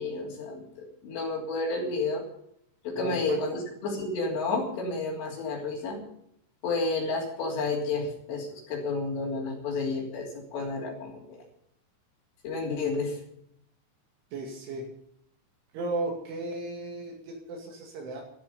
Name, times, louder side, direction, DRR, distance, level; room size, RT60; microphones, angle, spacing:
voice 1, 0.0-2.2 2.8-6.0 6.6-11.4 12.4-13.2, left 3 dB, 65° left, -7 dB, 5.4 m, -31 dB
voice 2, 3.0-3.4 14.3-14.9 15.7-18.2, right 2 dB, 75° right, 0 dB, 4.8 m, -35 dB
13.0 x 13.0 x 6.9 m, 0.71 s
omnidirectional pair, 5.6 m